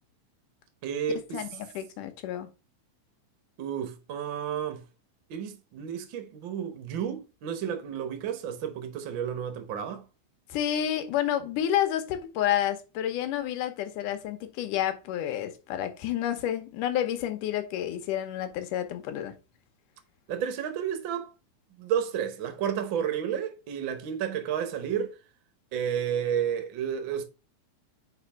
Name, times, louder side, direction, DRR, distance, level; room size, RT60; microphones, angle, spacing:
voice 1, 0.8-1.4 3.6-4.8 5.3-10.0 20.3-21.3 21.8-25.2 25.7-27.2, right 9 dB, 60° right, 1.2 m, -31 dB
voice 2, 1.3-2.5 10.5-19.3, left 11 dB, 90° left, 2.5 m, -30 dB
5.3 x 4.3 x 5.0 m
omnidirectional pair, 3.6 m